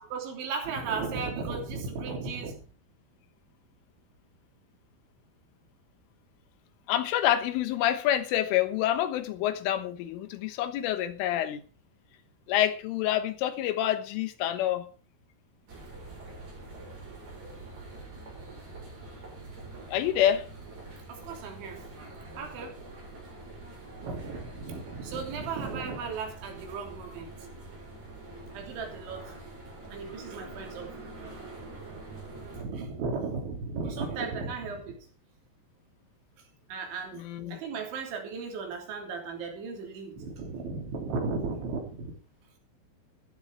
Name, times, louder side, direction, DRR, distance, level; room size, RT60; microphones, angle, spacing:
voice 1, 0.0-2.6 21.1-21.9 22.4-22.8 24.0-27.3 28.5-29.3 29.9-30.9 32.5-35.0 36.7-42.2, right 4 dB, 70° right, 5.5 m, -35 dB
voice 2, 6.9-11.6 12.5-14.9 19.9-20.5 37.2-37.6, left 12 dB, 90° left, 3.8 m, -27 dB
sound 1, 15.7-32.6, right 2 dB, 40° right, 8.6 m, -45 dB
13.5 x 11.5 x 4.7 m
omnidirectional pair, 5.6 m